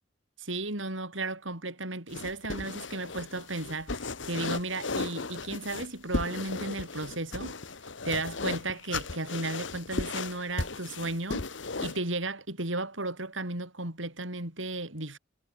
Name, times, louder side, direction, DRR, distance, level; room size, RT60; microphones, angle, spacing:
voice 1, 0.4-7.6 8.0-11.5 11.8-15.2, right 2 dB, 75° right, 7.0 m, -34 dB
sound 1, 2.1-12.0, left 3 dB, 70° left, 1.6 m, -36 dB
head